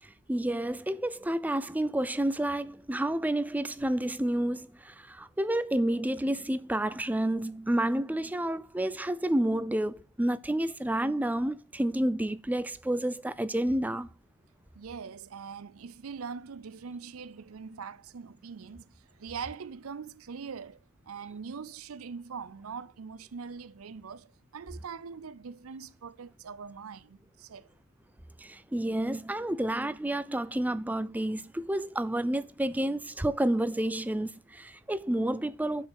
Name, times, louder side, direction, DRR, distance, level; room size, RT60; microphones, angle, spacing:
voice 1, 0.0-14.1 28.4-35.9, right 1 dB, 5° right, 0.4 m, -30 dB
voice 2, 14.7-27.7, right 6 dB, 80° right, 0.5 m, -42 dB
7.4 x 5.0 x 6.3 m
head